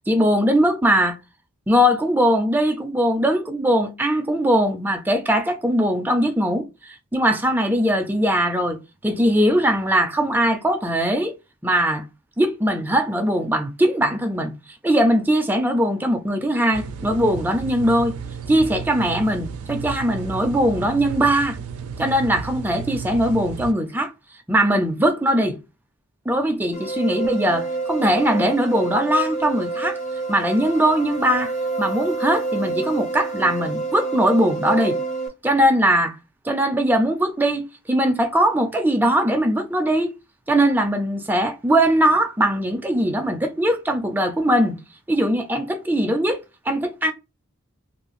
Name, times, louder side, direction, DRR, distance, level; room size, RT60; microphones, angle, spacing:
voice 1, 0.1-1.2 1.7-8.8 9.0-11.3 11.6-12.0 12.4-14.5 14.8-18.2 18.5-21.6 22.0-24.1 24.5-25.6 26.3-30.0 30.3-31.5 31.8-35.0 35.4-36.2 36.4-40.1 40.5-44.8 45.1-47.1, equal, 10° right, 0.3 m, -20 dB
sound 1, 16.7-23.7, right 6 dB, 85° right, 0.4 m, -33 dB
sound 2, 26.7-35.3, right 3 dB, 30° left, 0.6 m, -28 dB
2.7 x 2.3 x 2.9 m
head